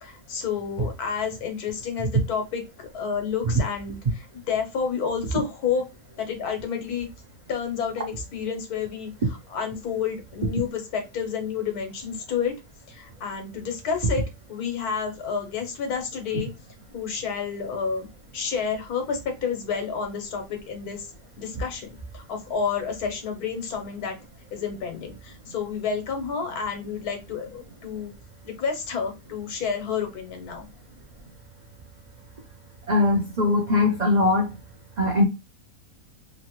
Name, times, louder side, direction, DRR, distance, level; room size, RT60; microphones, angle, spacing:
voice 1, 0.0-5.8 6.2-7.1 7.5-9.1 9.5-12.5 12.9-14.2 14.5-16.5 16.9-18.1 18.3-21.1 21.4-24.1 24.5-28.1 28.4-30.7, left 6 dB, 80° left, 1.4 m, -30 dB
voice 2, 32.9-34.5 35.0-35.3, left 2 dB, 85° right, 0.3 m, -21 dB
3.0 x 2.6 x 2.8 m
omnidirectional pair, 1.6 m